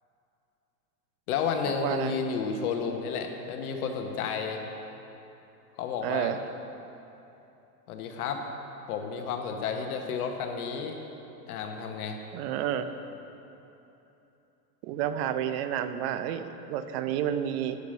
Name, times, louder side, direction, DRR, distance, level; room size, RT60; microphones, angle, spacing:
voice 1, 1.3-4.6 5.8-6.3 7.9-8.4 8.9-11.0 11.5-12.2, left 6 dB, 65° left, 4 dB, 1.2 m, -31 dB
voice 2, 1.8-2.1 6.0-6.4 12.3-12.9 14.8-17.8, right 10 dB, 40° right, 10 dB, 0.5 m, -30 dB
8.2 x 6.6 x 5.4 m, 3.0 s
hypercardioid pair, 125°, 49 cm